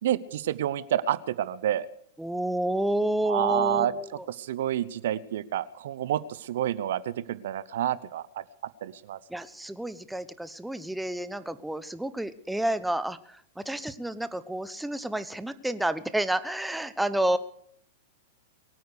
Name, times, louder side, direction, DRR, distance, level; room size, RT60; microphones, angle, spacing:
voice 1, 0.0-1.9 3.3-3.9 4.3-8.4 8.8-9.2, right 11 dB, 65° right, 16 dB, 0.8 m, -29 dB
voice 2, 2.2-4.1 9.3-17.4, right 1 dB, 5° right, 12 dB, 1.1 m, -30 dB
23.0 x 9.3 x 6.7 m, 0.67 s
hypercardioid pair, 105°, 0 cm